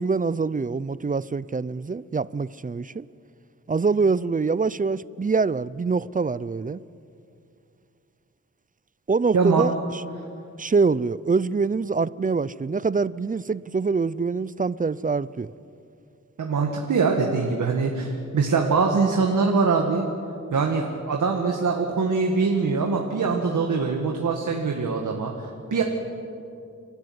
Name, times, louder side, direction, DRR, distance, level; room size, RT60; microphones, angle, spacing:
voice 1, 0.0-3.1 3.7-6.8 9.1-10.0 10.6-15.5, right 4 dB, 25° right, 0.5 m, -25 dB
voice 2, 9.3-9.6 16.4-20.1 20.5-25.8, right 4 dB, 85° right, 1.9 m, -23 dB
30.0 x 13.0 x 9.6 m
cardioid pair, 70°, 30 cm